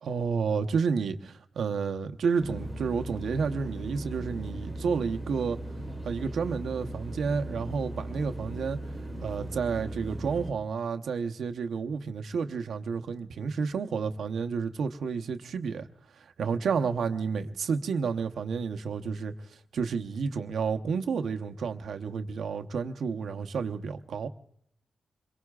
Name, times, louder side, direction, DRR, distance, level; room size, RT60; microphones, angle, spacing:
voice 1, 0.0-5.6 6.0-8.8 9.2-15.9 16.4-19.3 19.7-24.3, right 5 dB, 85° right, 0.9 m, -30 dB
sound 1, 2.4-10.5, right 1 dB, 20° left, 2.4 m, -38 dB
26.5 x 22.5 x 2.4 m
cardioid pair, 95°, 0 cm